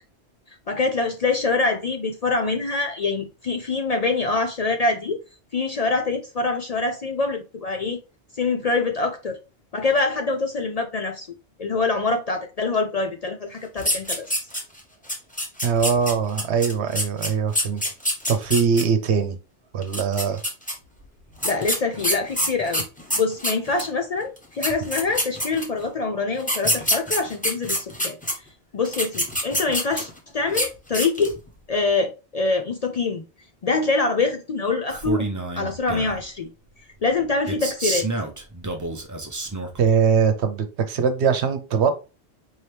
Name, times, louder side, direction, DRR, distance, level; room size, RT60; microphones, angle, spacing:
voice 1, 0.7-5.2 5.5-8.0 8.3-9.4 9.7-11.3 11.6-14.5 21.4-22.8 23.2-28.2 28.7-31.4 31.7-33.2 33.6-35.3 35.6-36.5 37.0-38.1, left 3 dB, 50° left, 0.5 m, -25 dB
sound 1, 13.8-14.8 15.1-18.8 19.8-20.7 21.4-23.9 24.4-24.5 24.6-25.8 26.4-28.3 28.8-30.2 30.5-30.7 30.9-31.4, equal, 10° left, 1.1 m, -25 dB
voice 2, 15.6-17.8 18.3-19.4 19.7-20.4 39.8-41.9, right 6 dB, 80° right, 1.0 m, -21 dB
Male speech man speaking, 34.9-36.2 37.5-39.9, right 2 dB, 20° right, 0.6 m, -29 dB
4.6 x 2.9 x 3.3 m
omnidirectional pair, 1.1 m